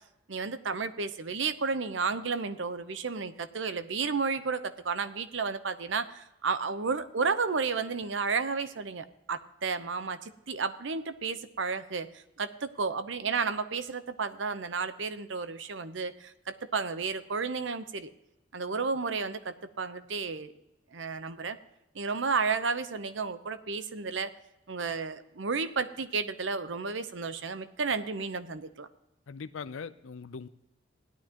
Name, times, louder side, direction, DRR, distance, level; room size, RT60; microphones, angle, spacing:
voice 1, 0.3-18.1 18.5-20.5 20.9-21.6 21.9-24.3 24.7-28.9, right 4 dB, 70° right, 12 dB, 0.8 m, -32 dB
voice 2, 29.3-30.5, left 5 dB, 85° left, 12 dB, 0.5 m, -40 dB
17.0 x 11.5 x 2.9 m, 0.88 s
head